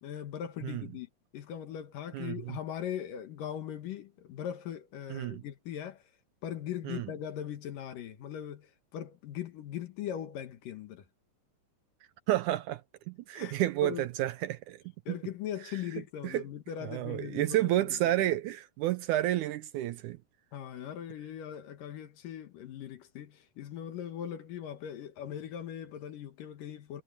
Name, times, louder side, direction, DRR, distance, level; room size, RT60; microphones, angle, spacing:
voice 1, 0.0-6.0 6.4-11.0 13.3-13.6 13.8-14.1 15.1-18.0 20.5-27.0, left 10 dB, 70° left, 3.1 m, -40 dB
voice 2, 2.1-2.6 5.1-5.4 6.8-7.1 12.3-12.8 13.1-15.2 15.7-15.8 16.2-16.4 16.8-20.2, right 14 dB, 80° right, 1.9 m, -31 dB
omnidirectional pair, 4.0 m